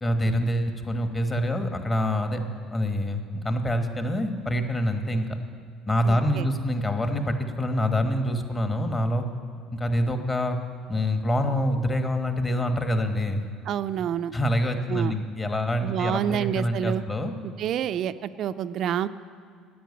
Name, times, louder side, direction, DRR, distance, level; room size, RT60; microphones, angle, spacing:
voice 1, 0.0-2.4 2.7-5.4 5.9-9.2 9.7-10.6 10.9-13.4 14.3-17.3, equal, 20° left, 6 dB, 1.2 m, -26 dB
voice 2, 6.0-6.5 13.6-14.3 14.9-15.2 15.8-17.0 17.6-19.1, right 9 dB, 55° right, 13 dB, 0.4 m, -28 dB
10.5 x 9.2 x 8.4 m, 2.1 s
supercardioid pair, 100°, 0 cm